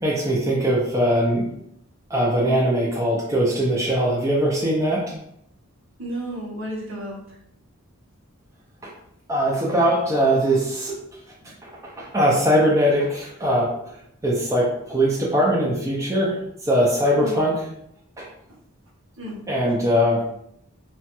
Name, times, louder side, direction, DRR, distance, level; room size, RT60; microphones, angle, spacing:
voice 1, 0.0-1.5 2.1-5.0 8.8-8.9 9.3-11.0 11.6-13.7 14.2-16.4 16.6-17.5 18.2-18.3 19.5-20.5, equal, 15° right, -4 dB, 0.4 m, -21 dB
voice 2, 6.0-7.4 11.4-11.5 12.0-12.1 17.1-17.4 18.5-18.6 19.2-19.4, right 1 dB, 65° right, -3 dB, 0.9 m, -33 dB
3.0 x 2.2 x 2.9 m, 0.74 s
head